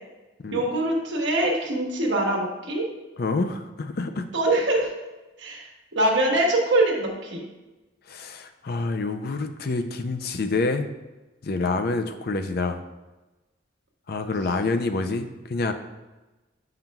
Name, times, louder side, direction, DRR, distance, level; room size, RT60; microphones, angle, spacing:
voice 1, 0.5-2.8 4.3-4.9 5.4-5.7 5.9-7.4, right 1 dB, 65° right, -1 dB, 1.3 m, -23 dB
voice 2, 3.2-4.3 8.1-10.9 11.4-12.8 14.1-15.7, left 3 dB, 55° left, 7 dB, 0.5 m, -27 dB
8.9 x 5.7 x 2.3 m, 1.1 s
head